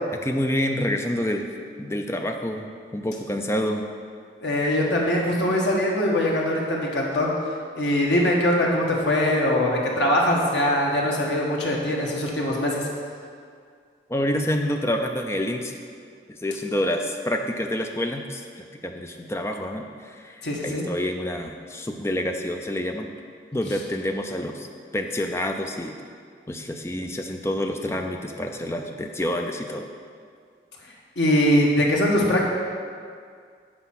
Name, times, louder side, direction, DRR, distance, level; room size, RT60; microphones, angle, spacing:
voice 1, 0.2-1.5 1.8-3.9 14.1-15.8 16.3-23.1 23.5-24.7 24.9-26.0 26.5-29.9, left 1 dB, 15° left, 4 dB, 0.5 m, -28 dB
voice 2, 4.4-7.3 7.8-12.8 20.4-20.8 31.2-32.4, left 1 dB, 85° left, -2 dB, 1.5 m, -22 dB
8.4 x 4.9 x 5.8 m, 2.1 s
head